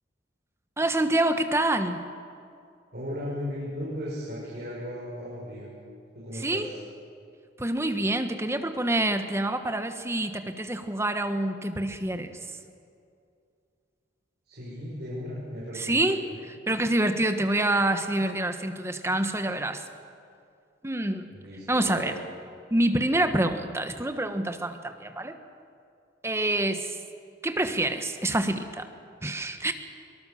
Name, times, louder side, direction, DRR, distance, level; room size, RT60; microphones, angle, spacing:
voice 1, 0.8-2.1 6.3-6.7 7.6-12.4 15.7-16.2 16.7-19.8 20.8-21.3 21.7-22.1 22.7-25.4 26.2-27.0 27.4-28.9 29.2-29.7, right 1 dB, 15° right, 8 dB, 1.2 m, -26 dB
voice 2, 2.9-5.7 6.1-6.7 14.5-16.0 21.3-22.1, equal, 60° right, -8 dB, 6.1 m, -36 dB
23.5 x 19.0 x 7.1 m, 2.4 s
head